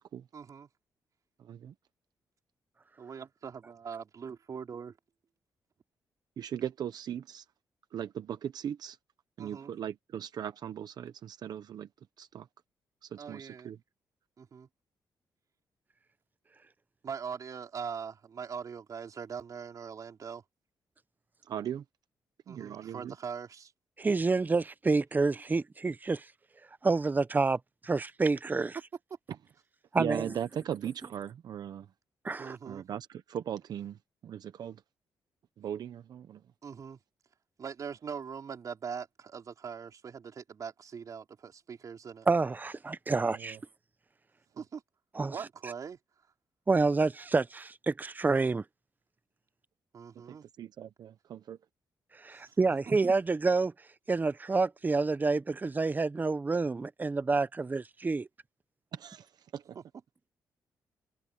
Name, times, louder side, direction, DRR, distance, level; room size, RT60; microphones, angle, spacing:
voice 1, 0.3-0.7 3.0-5.0 9.4-9.7 13.2-13.7 14.4-14.7 17.0-20.4 22.5-23.7 32.4-32.8 36.6-37.0 37.6-42.3 44.5-44.8 45.3-46.0 49.9-50.4 52.4-52.6 59.7-59.8, right 6 dB, 50° right, 4.6 m, -42 dB
voice 2, 1.4-1.7 6.4-7.4 7.9-9.0 9.4-11.9 12.2-12.5 13.0-13.8 21.4-21.8 22.5-23.1 30.0-31.9 32.6-34.8 35.6-36.4 43.3-43.6 50.3-51.6 58.9-59.8, right 9 dB, 70° right, 1.0 m, -38 dB
voice 3, 24.0-26.2 26.8-28.7 29.9-30.4 32.2-32.6 42.3-43.6 45.1-45.3 46.7-48.6 52.2-53.7 54.1-58.3, right 3 dB, 25° right, 0.8 m, -28 dB
cardioid pair, 90°, 7 cm